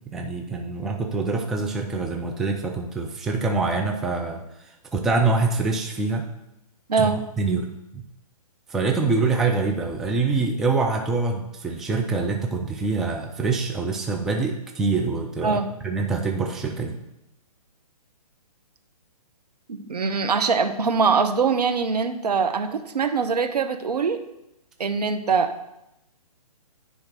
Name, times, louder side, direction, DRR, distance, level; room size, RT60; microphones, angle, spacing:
voice 1, 0.1-6.3 7.0-7.1 7.4-8.0 8.7-17.0, right 3 dB, ahead, 2 dB, 0.3 m, -25 dB
voice 2, 6.9-7.3 15.4-15.7 19.7-24.2 24.8-25.5, right 5 dB, 80° right, 8 dB, 1.0 m, -23 dB
10.0 x 3.5 x 6.6 m, 0.88 s
hypercardioid pair, 135°, 20 cm